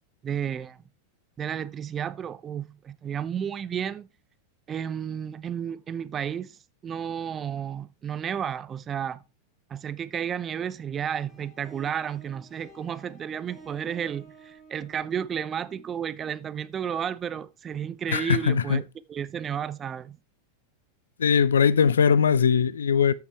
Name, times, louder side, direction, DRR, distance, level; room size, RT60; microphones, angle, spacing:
voice 1, 0.2-0.8 1.4-4.1 4.7-6.6 6.8-9.2 9.7-18.8 19.1-20.2, right 8 dB, 25° right, 0.7 m, -32 dB
sound 1, 11.3-16.7, right 3 dB, 5° right, 3.8 m, -51 dB
voice 2, 18.1-18.8 21.2-23.1, left 7 dB, 65° left, 0.5 m, -20 dB
13.5 x 7.0 x 3.3 m
figure-of-eight pair, 90°, 0 cm